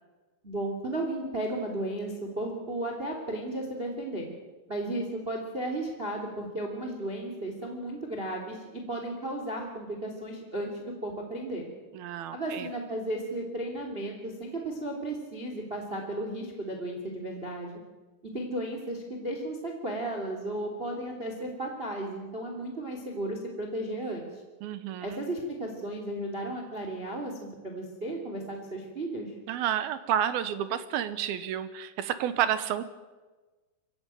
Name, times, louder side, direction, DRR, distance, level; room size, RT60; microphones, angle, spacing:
voice 1, 0.4-4.3 4.7-11.6 12.3-17.7 18.3-24.3 25.0-29.3, right 1 dB, 15° right, 2 dB, 2.6 m, -34 dB
voice 2, 11.9-12.7 24.6-25.2 29.5-32.9, right 10 dB, 70° right, 13 dB, 2.6 m, -30 dB
23.5 x 16.5 x 9.2 m, 1.2 s
omnidirectional pair, 4.9 m